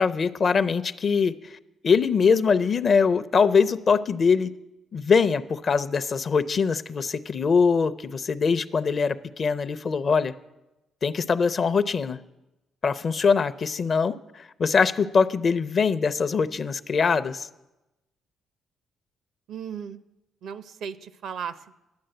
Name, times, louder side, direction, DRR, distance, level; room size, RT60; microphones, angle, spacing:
voice 1, 0.0-1.5 1.8-4.5 4.9-10.3 11.0-12.2 12.8-17.5, left 5 dB, 45° left, 13 dB, 0.5 m, -22 dB
voice 2, 19.5-20.0 20.4-21.7, right 7 dB, 75° right, 13 dB, 0.6 m, -36 dB
11.5 x 8.9 x 7.8 m, 0.98 s
cardioid pair, 90°, 0 cm